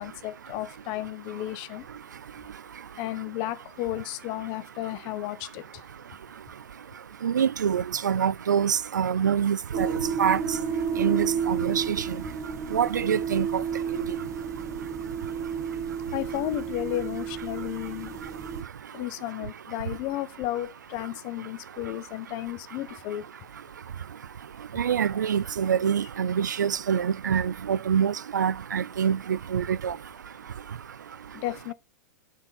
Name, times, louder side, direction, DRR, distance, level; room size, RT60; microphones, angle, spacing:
voice 1, 0.0-1.9 3.0-5.8 15.0-15.1 16.1-18.2 18.9-23.3 31.3-31.7, left 15 dB, 45° left, 0.9 m, -33 dB
voice 2, 7.2-9.9 10.2-10.4 11.0-12.2 12.7-13.6 13.9-14.2 24.7-30.0, right 8 dB, 90° right, 0.4 m, -25 dB
sound 1, 9.7-18.6, right 7 dB, 30° right, 1.0 m, -31 dB
9.6 x 4.5 x 4.1 m
hypercardioid pair, 115°, 10 cm